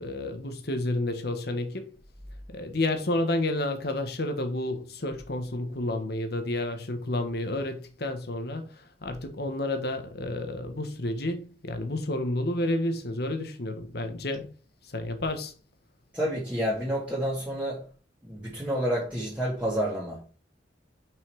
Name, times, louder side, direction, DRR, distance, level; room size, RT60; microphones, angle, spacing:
voice 1, 0.0-2.0 2.5-14.5 14.8-15.5, left 1 dB, 60° left, 1.4 m, -30 dB
voice 2, 16.1-17.9 18.2-20.3, equal, 10° right, 2.3 m, -29 dB
6.4 x 5.6 x 4.7 m
head